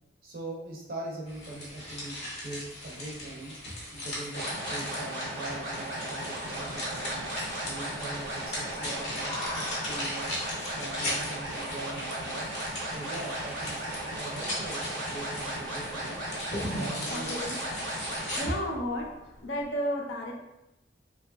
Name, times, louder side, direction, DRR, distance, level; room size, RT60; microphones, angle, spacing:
voice 1, 0.2-7.3 7.7-10.3 10.8-12.4 12.9-16.2 16.7-17.4, right 2 dB, 50° right, -2 dB, 0.5 m, -41 dB
sound 1, 1.3-18.4, left 1 dB, 35° left, 0.7 m, -38 dB
sound 2, 4.3-18.5, right 1 dB, 85° right, 1.0 m, -36 dB
sound 3, 6.5-19.8, left 1 dB, 5° left, 0.4 m, -49 dB
voice 2, 17.1-17.8 18.4-19.1 19.4-20.3, equal, 70° left, 0 dB, 0.5 m, -32 dB
2.6 x 2.3 x 2.3 m, 0.91 s
head